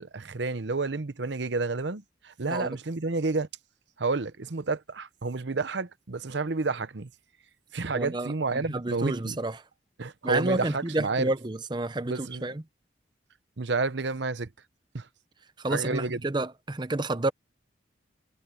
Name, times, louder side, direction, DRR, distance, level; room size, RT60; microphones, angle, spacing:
voice 1, 0.0-3.5 4.0-7.1 7.7-9.4 10.0-11.3 12.0-12.5 13.6-14.5 14.9-15.1 15.7-16.2, right 3 dB, 70° right, 0.9 m, -30 dB
voice 2, 7.9-9.6 10.2-12.6 15.6-17.3, right 2 dB, 25° right, 0.7 m, -30 dB
head